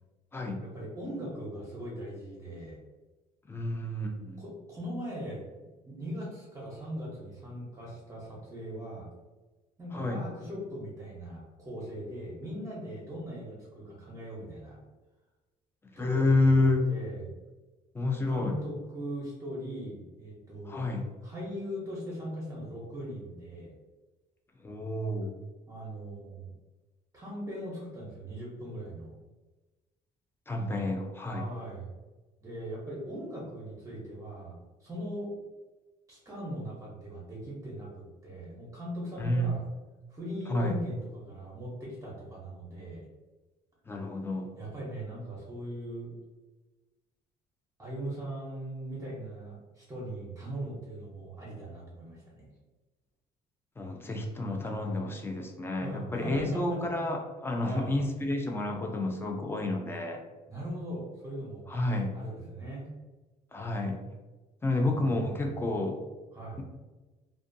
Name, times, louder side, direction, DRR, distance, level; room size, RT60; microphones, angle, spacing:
voice 1, 0.6-2.8 4.4-5.4 5.9-9.1 9.8-14.8 16.0-17.3 18.3-20.9 21.2-23.7 25.7-26.5 27.1-29.1 31.3-31.9 32.4-34.5 34.8-35.3 36.1-39.6 40.1-43.0 44.6-46.1 47.8-52.5 55.8-56.8 57.6-57.9 60.5-61.7 62.1-62.9 64.7-65.4 66.3-66.6, right 1 dB, 20° right, -5 dB, 0.7 m, -40 dB
voice 2, 3.5-4.4 9.9-10.2 16.0-16.9 17.9-18.5 20.7-21.0 24.6-25.3 30.5-31.5 39.2-39.5 40.5-40.8 43.9-44.5 53.8-60.2 61.7-62.1 63.5-64.0 64.6-66.0, left 2 dB, 15° left, 2 dB, 0.4 m, -29 dB
2.5 x 2.2 x 2.5 m, 1.2 s
cardioid pair, 110°, 17 cm